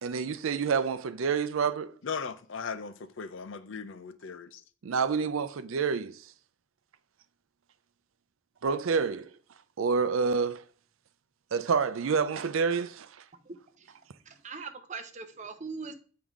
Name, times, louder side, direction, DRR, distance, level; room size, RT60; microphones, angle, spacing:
voice 1, 0.0-1.9 4.8-6.2 8.6-9.3 9.8-10.6 11.5-13.1, right 5 dB, 90° right, 0.5 m, -28 dB
voice 2, 2.0-4.6, left 5 dB, 70° left, 0.5 m, -38 dB
voice 3, 14.3-15.9, right 4 dB, 35° right, 0.7 m, -40 dB
7.1 x 4.7 x 3.7 m
head